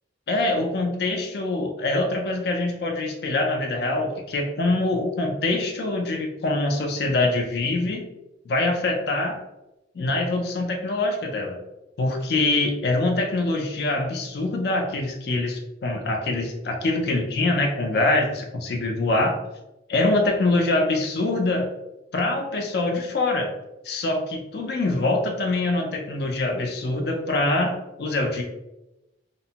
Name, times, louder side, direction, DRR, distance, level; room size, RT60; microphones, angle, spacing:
voice 1, 0.3-8.0 8.5-9.4 9.9-11.6 12.0-19.4 19.9-21.7 22.1-23.5 23.8-28.4, left 2 dB, 55° left, 2 dB, 0.4 m, -24 dB
2.8 x 2.1 x 2.7 m, 0.96 s
head